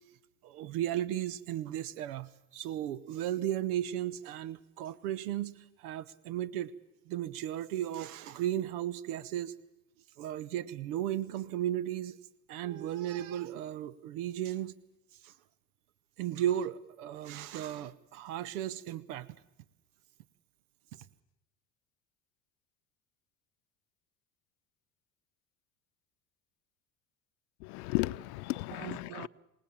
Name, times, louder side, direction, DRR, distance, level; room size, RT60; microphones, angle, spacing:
voice 1, 0.4-6.7 7.1-9.5 10.2-12.2 12.5-14.7 15.2-15.3 16.2-19.3 20.9-21.0 28.7-29.3, right 12 dB, 70° right, 1.1 m, -35 dB
voice 2, 27.6-29.3, left 20 dB, 70° left, 0.7 m, -34 dB
28.5 x 18.0 x 7.3 m
hypercardioid pair, 75°, 46 cm